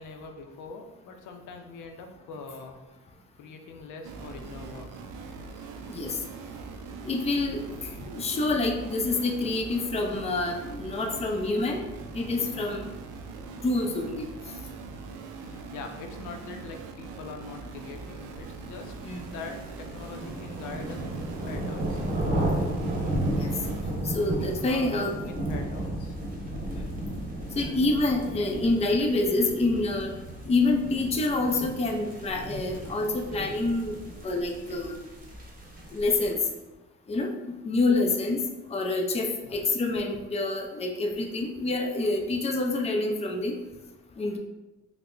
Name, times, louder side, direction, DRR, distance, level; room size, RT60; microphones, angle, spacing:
voice 1, 0.0-2.9 3.4-5.1 12.5-12.7 15.4-22.1 24.2-26.2 39.4-39.6, left 4 dB, 80° left, 4 dB, 0.5 m, -43 dB
sound 1, 4.0-23.8, right 4 dB, 85° right, 0.5 m, -42 dB
voice 2, 5.9-6.2 7.0-11.8 12.1-12.9 13.6-14.3 19.0-19.2 23.1-23.5 24.0-25.1 26.7-26.9 27.6-30.1 30.5-34.0 34.2-34.9 35.9-36.4 37.1-38.4 38.7-43.6 44.2-44.4, left 2 dB, 20° left, 3 dB, 0.5 m, -27 dB
sound 2, 18.9-36.4, right 1 dB, 30° right, 0.9 m, -34 dB
3.3 x 2.1 x 3.7 m, 1.1 s
cardioid pair, 90°, 30 cm